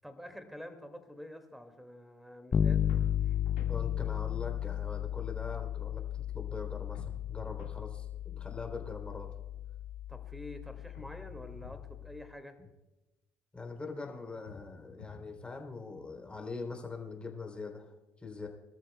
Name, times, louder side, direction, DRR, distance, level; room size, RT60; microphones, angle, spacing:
voice 1, 0.0-2.9 3.2-3.4 10.1-12.5, left 1 dB, ahead, 7 dB, 2.3 m, -47 dB
Bass guitar, 2.5-12.2, left 10 dB, 35° left, 0.8 m, -34 dB
sound 1, 2.9-3.8 6.9-7.8 10.9-11.8 14.4-15.4, left 5 dB, 85° left, 1.9 m, -50 dB
voice 2, 3.7-9.3 12.6-12.7 13.5-18.5, left 4 dB, 20° left, 3 dB, 3.5 m, -42 dB
24.5 x 13.5 x 2.3 m, 1.1 s
hypercardioid pair, 60°, 6 cm